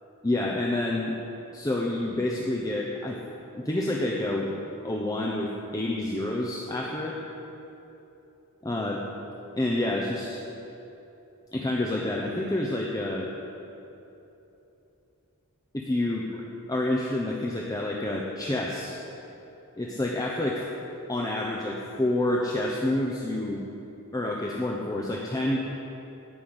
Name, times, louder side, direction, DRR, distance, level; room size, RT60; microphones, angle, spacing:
voice 1, 0.2-1.2 1.5-3.2 3.5-4.5 4.8-7.2 8.6-9.0 9.6-10.4 11.5-13.3 15.7-16.4 16.7-19.0 19.8-20.6 21.1-23.6 24.1-25.6, left 1 dB, 15° left, -2 dB, 0.8 m, -28 dB
17.0 x 5.7 x 7.9 m, 3.0 s
head